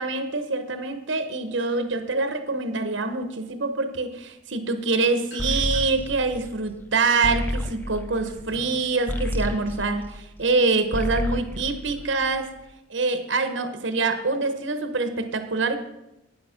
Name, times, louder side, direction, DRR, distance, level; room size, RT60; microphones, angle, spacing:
voice 1, 0.0-12.5 12.9-15.8, right 3 dB, 70° right, 8 dB, 0.9 m, -25 dB
sound 1, 4.7-6.1 6.6-8.9, left 1 dB, 60° left, 2.7 m, -48 dB
sound 2, 5.4-10.6 10.8-12.6, equal, 10° left, 0.6 m, -31 dB
9.4 x 8.0 x 5.7 m, 0.90 s
head